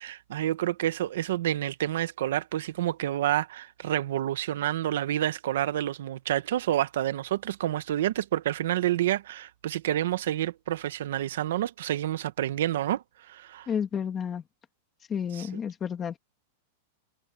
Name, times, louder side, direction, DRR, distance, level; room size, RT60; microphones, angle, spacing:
voice 1, 0.0-13.7 15.4-15.5, right 13 dB, 65° right, 1.0 m, -29 dB
voice 2, 13.7-14.4 15.1-16.2, left 7 dB, 15° left, 2.3 m, -31 dB
supercardioid pair, 175°, 0 cm